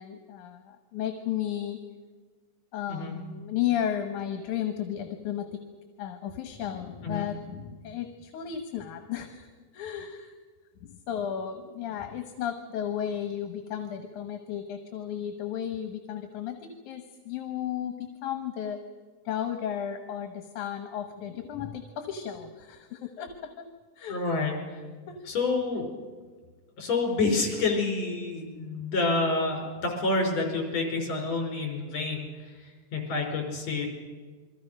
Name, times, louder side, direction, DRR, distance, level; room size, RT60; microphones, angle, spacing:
voice 1, 0.0-1.8 2.7-5.5 6.0-9.5 9.7-10.3 10.8-18.8 19.3-23.5 24.0-24.2 25.1-25.2, left 9 dB, 80° left, 6 dB, 2.7 m, -34 dB
voice 2, 24.1-24.6 25.3-25.9 26.8-32.3 32.9-33.9, left 3 dB, 60° left, 2 dB, 5.6 m, -28 dB
28.5 x 23.0 x 5.5 m, 1.4 s
omnidirectional pair, 3.5 m